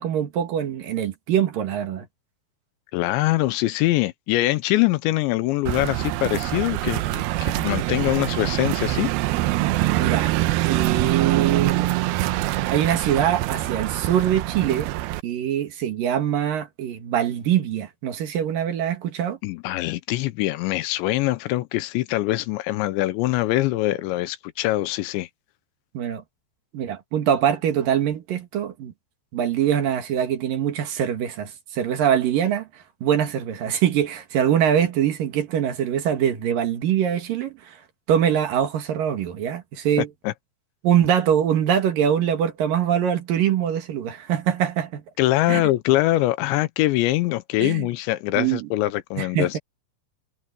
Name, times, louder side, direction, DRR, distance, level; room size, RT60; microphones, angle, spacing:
voice 1, 0.0-2.1 9.9-10.3 10.7-11.9 12.7-14.9 15.2-19.4 25.9-26.2 26.7-28.9 29.3-37.8 38.1-40.1 40.8-45.0 45.5-45.6 47.6-47.9 48.4-48.7 49.2-49.6, right 9 dB, 60° right, 3.0 m, -23 dB
voice 2, 2.9-9.1 19.4-25.3 40.0-40.3 45.2-49.6, left 17 dB, 90° left, 3.1 m, -23 dB
sound 1, 5.7-15.2, right 16 dB, 85° right, 2.2 m, -24 dB
omnidirectional pair, 5.3 m